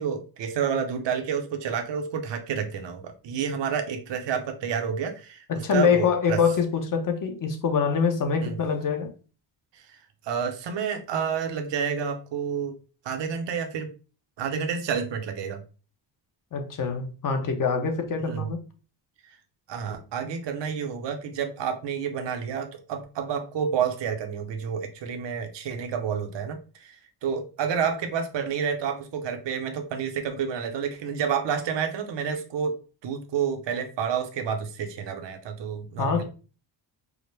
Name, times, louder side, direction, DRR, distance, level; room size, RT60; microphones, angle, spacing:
voice 1, 0.0-5.4 5.7-6.4 8.4-8.6 9.7-10.0 10.2-12.8 13.0-13.9 14.4-15.6 18.2-18.5 19.7-32.8 33.0-36.2, right 7 dB, 70° right, 0.8 m, -29 dB
voice 2, 5.5-9.1 16.5-18.6 36.0-36.2, left 6 dB, 45° left, 0.8 m, -25 dB
4.8 x 2.1 x 3.2 m
cardioid pair, 125°, 44 cm